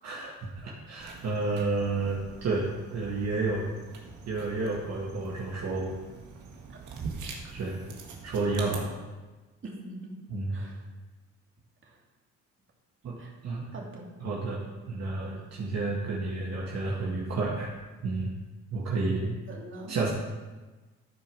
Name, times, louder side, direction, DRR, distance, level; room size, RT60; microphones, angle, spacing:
voice 1, 0.0-3.7 4.3-6.0 7.5-7.8 8.2-9.0 10.3-10.7 13.0-13.2 13.4-13.7 14.2-14.6 14.9-17.7 18.0-18.3 18.7-19.4 19.9-20.1, right 3 dB, 60° right, -4 dB, 2.0 m, -30 dB
sound 1, 1.0-8.8, right 5 dB, 80° right, 1.8 m, -44 dB
voice 2, 9.6-10.2 10.5-10.8 11.9-12.0 13.2-13.3 13.7-14.1 19.5-20.1, right 2 dB, 40° right, -2 dB, 2.6 m, -43 dB
13.0 x 5.1 x 6.2 m, 1.2 s
cardioid pair, 90°, 30 cm